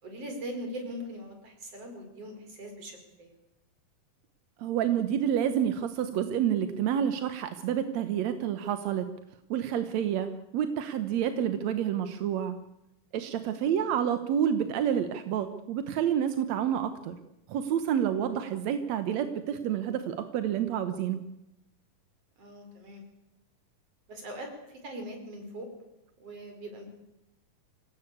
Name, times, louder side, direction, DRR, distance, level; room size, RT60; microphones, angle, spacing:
voice 1, 0.0-3.3 13.4-13.7 18.4-18.6 22.4-23.0 24.1-25.7 26.2-26.9, equal, 45° right, 5 dB, 5.9 m, -41 dB
voice 2, 4.6-9.1 9.5-10.3 10.5-12.5 13.1-17.1 17.5-21.2, right 9 dB, 65° right, 10 dB, 2.0 m, -29 dB
26.0 x 17.5 x 8.5 m, 0.87 s
omnidirectional pair, 4.1 m